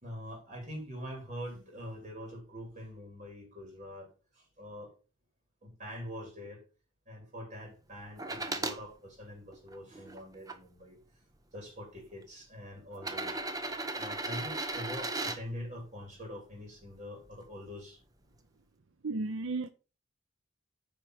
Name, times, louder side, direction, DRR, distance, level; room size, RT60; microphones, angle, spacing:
voice 1, 0.0-5.0 5.6-6.6 7.1-11.0 11.5-13.4 14.0-18.0, equal, 35° right, 3.7 m, -44 dB
sound 1, 8.2-8.8 9.5-10.6 11.5-11.6 12.9-15.4 17.3-17.4, right 2 dB, 15° right, 0.8 m, -36 dB
voice 2, 19.0-19.7, right 3 dB, 70° right, 0.6 m, -33 dB
9.4 x 4.9 x 4.9 m
head